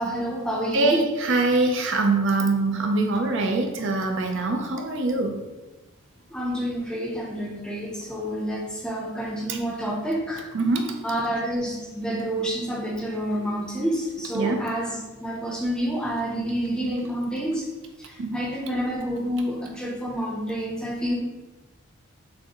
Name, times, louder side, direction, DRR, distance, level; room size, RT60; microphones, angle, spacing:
voice 1, 0.0-1.1 6.3-10.5 11.0-17.7 18.0-21.1, equal, 5° left, -2 dB, 0.6 m, -28 dB
voice 2, 0.7-5.4 10.5-10.9 14.3-14.6 18.2-18.4, right 3 dB, 55° right, 3 dB, 0.5 m, -23 dB
6.2 x 2.5 x 2.9 m, 1.1 s
head